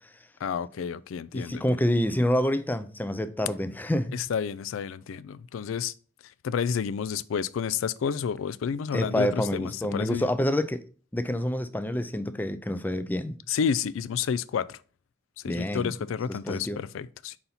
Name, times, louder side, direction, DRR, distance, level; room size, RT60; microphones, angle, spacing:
voice 1, 0.4-1.6 4.1-5.9 6.4-10.3 13.5-14.8 15.4-17.4, left 7 dB, 80° left, 0.3 m, -30 dB
voice 2, 1.3-4.2 8.9-10.8 11.1-13.4 15.4-15.9 16.3-16.8, left 1 dB, 10° left, 0.4 m, -27 dB
4.3 x 4.0 x 5.5 m
head